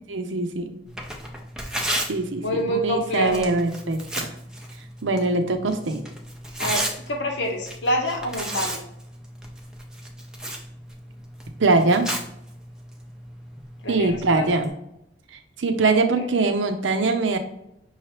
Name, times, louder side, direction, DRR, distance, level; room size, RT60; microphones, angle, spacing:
voice 1, 0.1-0.8 2.1-4.3 5.0-6.0 11.6-12.1 13.9-14.7 15.6-17.4, right 3 dB, 85° right, 7 dB, 0.6 m, -22 dB
Tearing, 0.9-14.7, right 1 dB, 5° right, 0.5 m, -34 dB
voice 2, 2.4-3.5 6.6-8.8 13.8-14.5 15.9-16.2, equal, 70° left, 1 dB, 1.0 m, -27 dB
5.6 x 3.2 x 2.9 m, 0.80 s
head